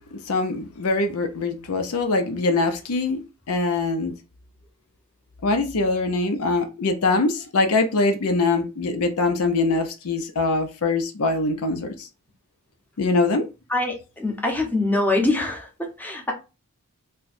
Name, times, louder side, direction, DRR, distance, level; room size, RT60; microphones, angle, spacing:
voice 1, 0.0-3.2 3.5-4.1 5.4-12.1 13.0-13.4, left 3 dB, 75° left, 0.6 m, -23 dB
voice 2, 13.7-16.3, left 2 dB, 10° left, 0.8 m, -24 dB
4.4 x 2.2 x 2.5 m
head